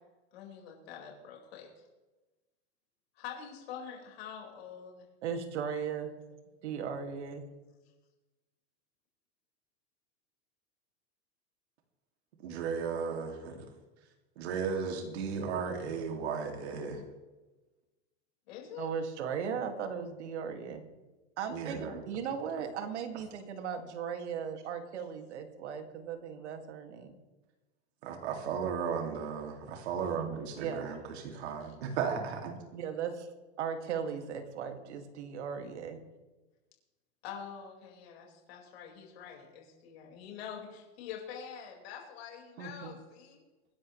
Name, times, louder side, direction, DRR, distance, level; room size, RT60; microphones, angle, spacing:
voice 1, 0.3-1.8 3.1-5.1 18.5-18.9 31.6-31.7 37.2-43.4, left 8 dB, 65° left, -1 dB, 4.8 m, -45 dB
voice 2, 5.2-6.1 6.6-7.4 18.8-20.8 21.4-27.1 30.6-31.0 32.7-33.3 33.6-36.0 42.6-42.9, right 7 dB, 90° right, 6 dB, 2.2 m, -37 dB
voice 3, 12.4-13.7 14.4-17.0 21.5-22.0 28.0-32.5, right 6 dB, 70° right, 3 dB, 2.4 m, -35 dB
24.0 x 11.0 x 3.2 m, 1.2 s
supercardioid pair, 170°, 33 cm